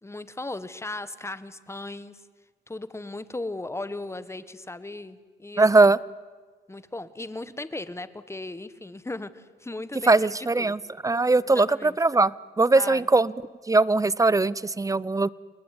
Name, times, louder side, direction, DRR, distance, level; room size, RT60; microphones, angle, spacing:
voice 1, 0.0-2.2 2.7-5.6 6.7-10.8 11.4-12.0 12.8-13.1, left 2 dB, 15° left, 14 dB, 1.6 m, -37 dB
voice 2, 5.6-6.0 10.1-13.3 13.7-15.3, right 3 dB, 15° right, 21 dB, 0.8 m, -20 dB
29.5 x 20.0 x 9.8 m, 1.4 s
cardioid pair, 90°, 20 cm